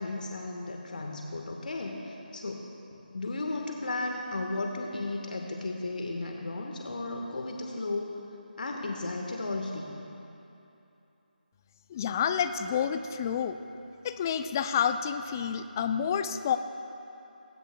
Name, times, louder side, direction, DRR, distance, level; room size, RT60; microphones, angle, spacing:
voice 1, 0.0-2.6 3.1-8.1 8.6-9.9, left 2 dB, 60° left, 1 dB, 1.3 m, -34 dB
voice 2, 11.9-13.6 14.0-16.6, left 8 dB, 20° left, 10 dB, 0.4 m, -29 dB
20.5 x 17.0 x 2.2 m, 2.9 s
figure-of-eight pair, 160°, 5 cm